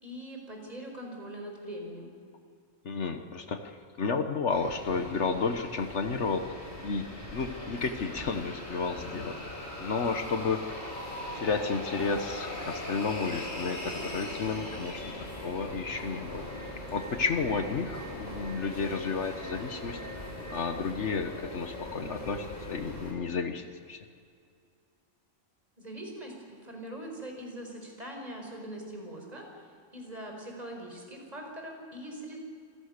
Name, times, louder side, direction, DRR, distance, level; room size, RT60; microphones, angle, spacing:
voice 1, 0.0-2.1 25.8-29.7 29.9-32.4, right 1 dB, 30° right, 1 dB, 4.8 m, -42 dB
voice 2, 2.8-10.9 11.3-16.4 16.9-20.0 20.5-24.0, left 4 dB, 65° left, 7 dB, 1.4 m, -32 dB
sound 1, 4.5-23.1, left 1 dB, 40° left, 4.5 m, -40 dB
27.0 x 15.5 x 6.7 m, 2.3 s
omnidirectional pair, 1.3 m